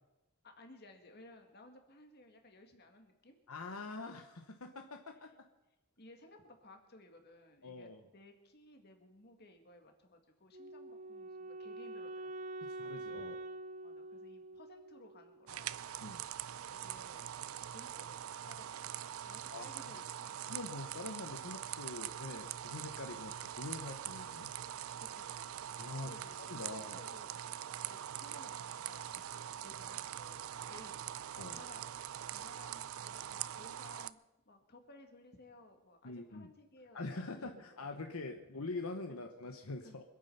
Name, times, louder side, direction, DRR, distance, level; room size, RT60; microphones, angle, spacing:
voice 1, 0.4-3.4 6.0-12.5 13.2-13.3 13.8-16.1 16.5-18.9 19.2-20.4 25.0-27.4 27.8-29.1 29.6-31.9 32.3-37.8 39.1-39.2 39.8-40.0, left 1 dB, 45° left, 5 dB, 2.1 m, -58 dB
voice 2, 3.5-5.5 7.6-8.0 12.6-13.4 16.0-16.2 19.2-19.7 20.5-24.5 25.8-26.1 26.4-27.0 31.3-31.6 36.0-36.5 36.9-40.0, left 3 dB, 75° left, 5 dB, 1.0 m, -44 dB
Wind instrument woodwind instrument, 10.5-15.6, right 2 dB, 35° right, 0.8 m, -46 dB
sound 1, 15.5-34.1, right 10 dB, 70° right, 0.4 m, -43 dB
25.0 x 8.8 x 5.7 m, 0.97 s
head